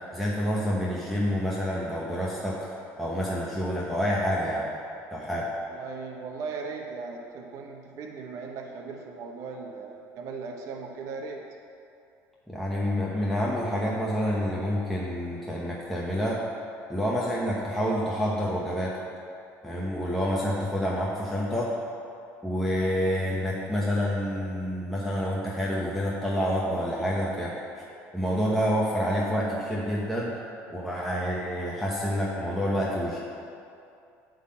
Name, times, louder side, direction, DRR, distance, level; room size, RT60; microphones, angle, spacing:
voice 1, 0.0-4.7 5.1-5.5 12.5-16.4 16.9-19.0 19.6-21.7 22.4-27.8 28.1-30.4 30.7-33.2, equal, ahead, -6 dB, 1.0 m, -28 dB
voice 2, 5.6-11.4, right 4 dB, 60° right, 1 dB, 1.0 m, -38 dB
10.5 x 3.9 x 7.6 m, 2.5 s
cardioid pair, 135°, 6 cm